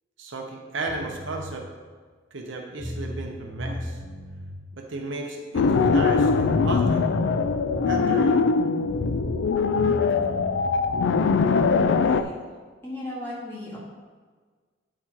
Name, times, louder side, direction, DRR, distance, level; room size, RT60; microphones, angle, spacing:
voice 1, 0.2-1.6 2.3-4.0 4.8-7.0 7.9-8.4, right 2 dB, 65° right, 1 dB, 0.8 m, -34 dB
sound 1, 0.9-1.4 2.4-2.5 2.8-4.5 6.6-6.7 7.0-8.2 8.9-10.6, equal, 35° right, 1.7 m, -36 dB
sound 2, 5.5-12.2, left 4 dB, 65° left, 0.3 m, -22 dB
voice 2, 12.0-12.3 12.8-13.8, left 1 dB, 10° left, -7 dB, 2.1 m, -36 dB
8.8 x 4.3 x 4.5 m, 1.5 s
head